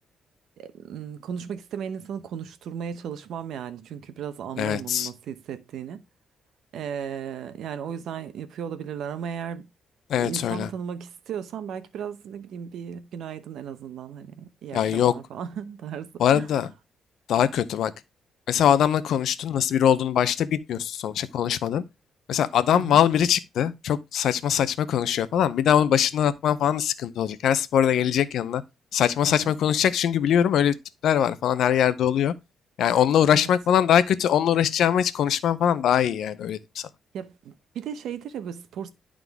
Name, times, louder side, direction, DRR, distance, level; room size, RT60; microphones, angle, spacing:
voice 1, 0.6-6.0 6.7-9.7 10.2-16.5 22.7-23.0 29.2-29.5 33.3-33.5 37.1-38.9, right 8 dB, 80° right, 0.8 m, -35 dB
voice 2, 4.6-5.1 10.1-10.7 14.7-15.1 16.2-16.7 17.3-17.9 18.5-21.8 22.3-28.6 28.9-30.7 31.0-32.3 32.8-36.6, left 9 dB, 75° left, 0.6 m, -22 dB
11.0 x 3.8 x 3.5 m
cardioid pair, 125°, 0 cm